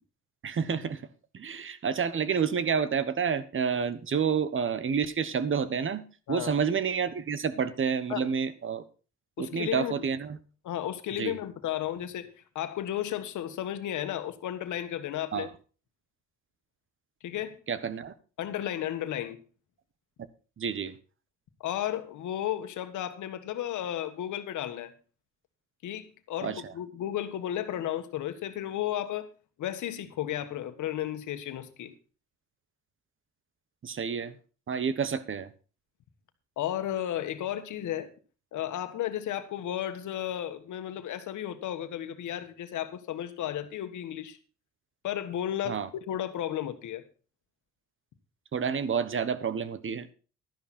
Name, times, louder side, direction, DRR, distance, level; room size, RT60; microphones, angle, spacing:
voice 1, 0.4-1.0 1.3-6.0 6.3-8.8 9.4-10.4 11.1-11.4 15.3-15.5 17.7-18.1 20.6-20.9 26.4-26.7 33.8-34.4 34.7-35.5 45.7-45.9 48.5-50.1, right 6 dB, 40° right, 1.2 m, -29 dB
voice 2, 9.4-10.0 10.6-12.3 12.5-15.5 17.2-17.6 18.4-19.4 21.6-24.9 25.8-29.3 29.6-31.9 36.6-38.1 38.5-44.4 45.0-47.0, left 11 dB, 75° left, 1.5 m, -33 dB
12.0 x 11.0 x 4.3 m
cardioid pair, 90°, 30 cm